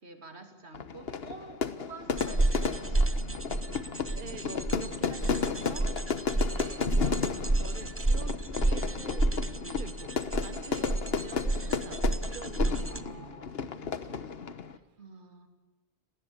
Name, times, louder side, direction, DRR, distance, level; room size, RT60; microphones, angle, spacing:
voice 1, 0.0-4.4 12.8-13.7 15.0-15.5, right 3 dB, 80° right, 5 dB, 3.0 m, -49 dB
Fire / Fireworks, 0.7-14.8, left 6 dB, 65° left, 1.3 m, -34 dB
sound 1, 2.1-13.0, right 2 dB, 15° right, 0.7 m, -30 dB
voice 2, 4.1-10.1 10.4-14.3 14.7-14.8, right 4 dB, 50° right, 9 dB, 1.3 m, -47 dB
29.0 x 18.5 x 8.7 m, 1.1 s
omnidirectional pair, 1.1 m